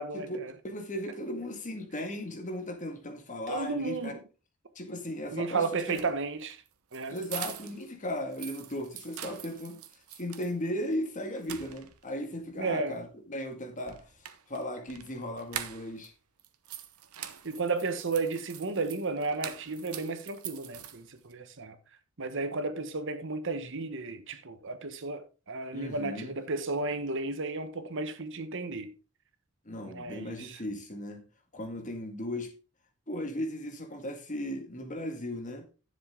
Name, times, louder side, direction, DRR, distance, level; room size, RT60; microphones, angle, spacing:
voice 1, 0.0-0.5 3.5-4.2 5.3-6.6 6.9-7.2 12.5-13.0 17.4-21.8 22.2-28.9 29.8-30.6, right 3 dB, 60° right, 1.1 m, -33 dB
voice 2, 0.6-4.1 4.8-6.0 7.1-9.8 10.2-14.1 14.5-16.1 25.7-26.3 29.7-31.2 31.5-32.5 33.1-35.7, left 1 dB, 35° left, 2.0 m, -36 dB
sound 1, 5.8-7.9 8.2-10.5 10.9-11.0 11.4-12.2 13.8-16.1 16.4-21.3, right 10 dB, 85° right, 1.0 m, -44 dB
10.5 x 7.5 x 3.7 m
head